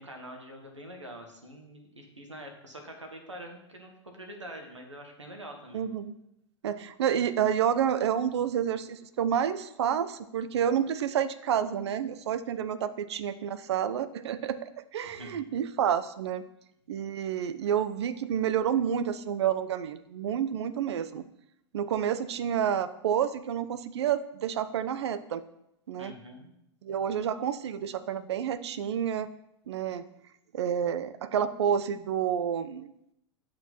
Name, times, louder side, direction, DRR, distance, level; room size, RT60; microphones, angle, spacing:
voice 1, 0.0-5.9 15.0-15.4 26.0-26.5, right 1 dB, 90° right, 2 dB, 1.5 m, -45 dB
voice 2, 5.7-6.1 6.6-16.4 16.9-21.2 21.7-25.4 25.9-26.1 26.8-29.3 29.7-30.0 30.5-32.9, right 9 dB, 65° right, 14 dB, 0.6 m, -29 dB
7.6 x 6.1 x 4.4 m, 0.79 s
figure-of-eight pair, 90°, 15 cm